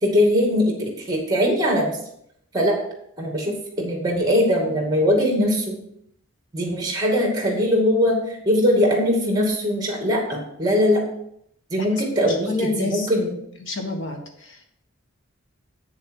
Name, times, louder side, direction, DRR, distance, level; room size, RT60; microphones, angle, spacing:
voice 1, 0.0-2.0 2.5-2.8 3.2-5.8 6.5-11.0 11.7-13.3, equal, 20° right, 0 dB, 2.3 m, -21 dB
voice 2, 12.2-13.1 13.6-14.6, left 3 dB, 65° left, 3 dB, 1.4 m, -28 dB
8.8 x 6.9 x 4.7 m, 0.71 s
head